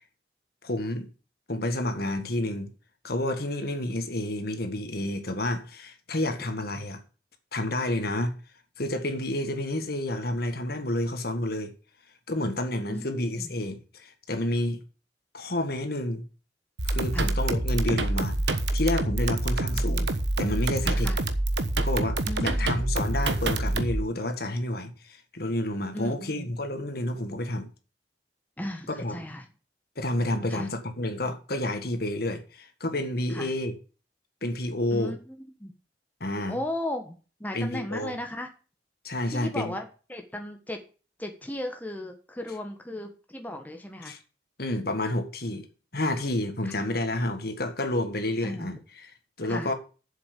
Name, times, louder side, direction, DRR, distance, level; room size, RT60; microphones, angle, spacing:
voice 1, 0.6-1.1 1.5-2.7 3.0-7.0 7.5-8.4 8.8-11.7 12.3-14.8 15.3-16.2 16.9-20.1 20.4-21.1 21.8-27.7 29.0-29.2 30.0-33.7 34.4-35.2 36.2-36.6 37.5-38.1 39.0-39.7 44.0-44.2 44.6-45.7 45.9-49.1 49.4-49.7, left 1 dB, 55° left, 1.8 m, -30 dB
voice 2, 12.9-13.5 17.1-17.3 19.7-19.8 21.0-21.2 22.2-22.9 25.9-26.5 28.6-29.5 30.5-30.7 33.3-33.5 34.9-35.7 36.5-37.1 37.4-38.5 39.3-40.8 41.2-44.1 46.6-46.7 48.4-48.8 49.5-49.7, left 1 dB, 10° left, 1.4 m, -36 dB
sound 1, 16.8-24.0, right 2 dB, 75° right, 1.2 m, -26 dB
7.5 x 7.3 x 8.4 m
head